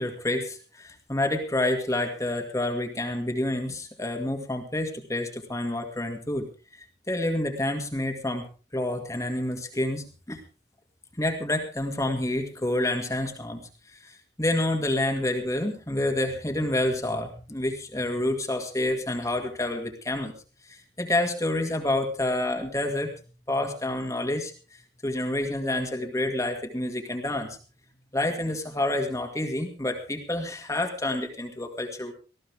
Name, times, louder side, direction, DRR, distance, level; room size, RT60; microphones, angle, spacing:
voice 1, 0.0-6.5 6.7-8.5 8.7-10.4 11.2-13.6 13.9-20.3 20.6-23.1 23.5-24.5 25.0-27.6 28.1-32.1, left 1 dB, 15° left, 3 dB, 2.1 m, -28 dB
19.5 x 14.5 x 3.5 m, 0.34 s
head